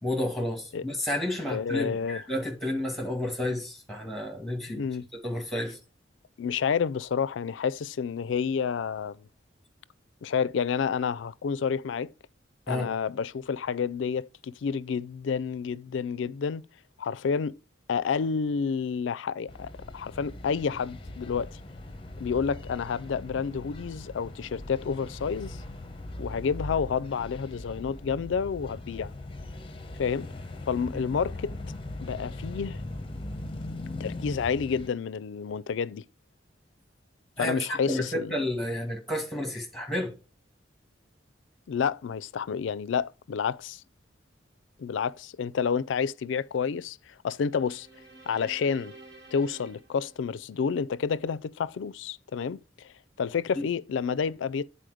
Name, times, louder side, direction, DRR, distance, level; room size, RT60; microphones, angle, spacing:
voice 1, 0.0-4.8 5.2-5.8 12.7-12.9 37.4-40.1 53.6-53.7, left 1 dB, ahead, 2.1 m, -31 dB
voice 2, 1.5-2.2 4.7-5.0 6.4-9.3 10.2-12.1 12.7-16.6 17.0-17.6 17.9-21.6 22.2-25.6 26.2-29.1 30.0-30.3 30.7-31.5 32.0-32.8 34.0-36.0 37.4-38.3 41.7-43.8 44.8-47.9 48.3-48.9 49.3-52.9 53.2-54.7, left 6 dB, 75° left, 0.4 m, -29 dB
sound 1, 19.5-34.9, left 2 dB, 30° left, 0.7 m, -40 dB
sound 2, 47.5-50.9, right 2 dB, 75° right, 3.3 m, -50 dB
9.2 x 4.2 x 4.9 m
head